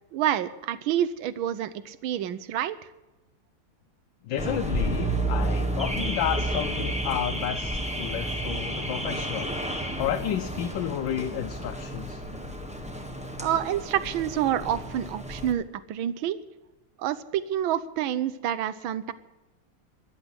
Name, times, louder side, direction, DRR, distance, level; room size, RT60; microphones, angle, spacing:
voice 1, 0.1-2.8 13.4-16.4 17.0-19.1, right 11 dB, 80° right, 15 dB, 1.6 m, -28 dB
voice 2, 4.2-9.5 10.0-12.2, left 10 dB, 70° left, 8 dB, 1.4 m, -31 dB
Car / Alarm, 4.4-15.5, right 1 dB, 5° right, 1.1 m, -31 dB
14.5 x 10.5 x 8.1 m, 1.0 s
omnidirectional pair, 2.2 m